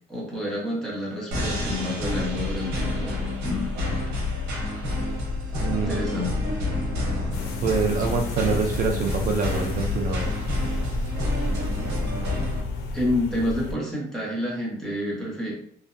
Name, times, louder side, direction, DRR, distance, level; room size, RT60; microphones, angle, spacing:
voice 1, 0.1-3.8 5.9-6.4 12.9-15.6, left 1 dB, 5° left, -5 dB, 1.0 m, -29 dB
sound 1, 1.3-12.6, left 2 dB, 90° right, 0.8 m, -28 dB
voice 2, 5.6-6.0 7.6-10.3, right 5 dB, 55° right, 1 dB, 0.4 m, -25 dB
sound 2, 7.3-13.7, left 3 dB, 80° left, 0.5 m, -33 dB
2.5 x 2.1 x 2.5 m, 0.63 s
cardioid pair, 110°, 17 cm